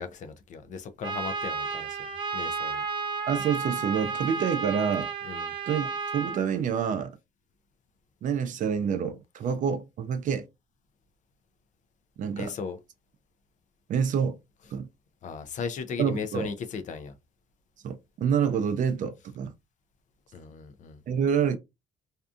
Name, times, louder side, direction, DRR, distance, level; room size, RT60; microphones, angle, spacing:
voice 1, 0.0-2.1 2.3-2.8 5.2-5.5 12.4-12.8 15.2-17.1 20.3-21.0, left 5 dB, 50° left, 0.5 m, -36 dB
Trumpet, 1.0-6.4, right 5 dB, 30° right, 1.0 m, -32 dB
voice 2, 3.3-5.1 5.7-7.2 8.2-10.5 12.2-12.5 13.9-14.4 14.7-14.9 16.0-16.5 17.8-19.5 21.1-21.6, right 7 dB, 50° right, 0.5 m, -27 dB
2.6 x 2.3 x 2.4 m
cardioid pair, 110°, 17 cm